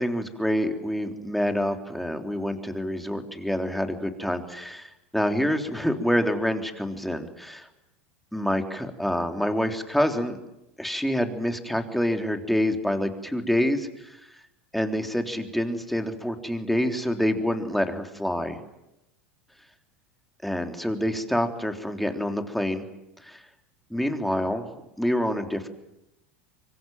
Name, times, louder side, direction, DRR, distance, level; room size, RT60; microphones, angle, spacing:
voice 1, 0.0-7.7 8.3-10.4 10.8-14.2 14.7-18.6 20.4-22.8 23.2-23.4 23.9-24.7 25.0-25.7, equal, ahead, 5 dB, 3.6 m, -27 dB
25.0 x 24.0 x 9.2 m, 0.89 s
hypercardioid pair, 85°, 7 cm